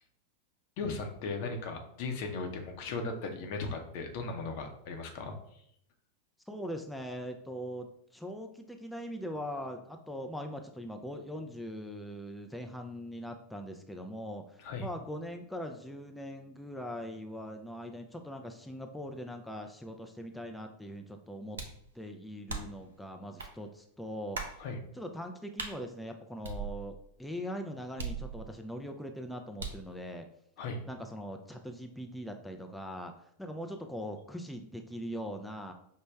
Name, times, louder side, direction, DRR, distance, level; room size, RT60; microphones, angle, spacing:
voice 1, 0.8-5.3 14.6-14.9 24.6-24.8 30.6-30.8, left 3 dB, 60° left, 4 dB, 0.7 m, -37 dB
voice 2, 6.5-7.9 8.1-21.6 21.9-24.4 24.9-30.3 30.9-33.1 33.4-35.7, equal, 5° left, 4 dB, 0.4 m, -41 dB
sound 1, 21.6-21.9 22.5-22.9 23.4-23.5 24.3-24.6 25.6-25.8 26.4-27.1 28.0-28.7 29.6-29.9, right 4 dB, 85° right, 0.6 m, -39 dB
5.1 x 2.1 x 3.3 m, 0.71 s
hypercardioid pair, 100°, 0 cm